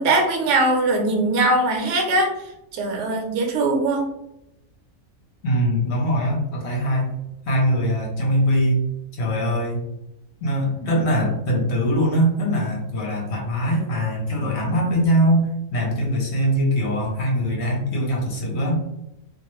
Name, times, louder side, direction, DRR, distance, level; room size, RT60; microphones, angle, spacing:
voice 1, 0.0-2.3 2.7-4.0, right 2 dB, 70° right, 1 dB, 0.9 m, -20 dB
voice 2, 5.4-7.1 7.5-8.8 9.2-9.8 10.4-18.8, equal, 60° left, -1 dB, 0.9 m, -22 dB
2.4 x 2.1 x 2.9 m, 0.86 s
omnidirectional pair, 1.4 m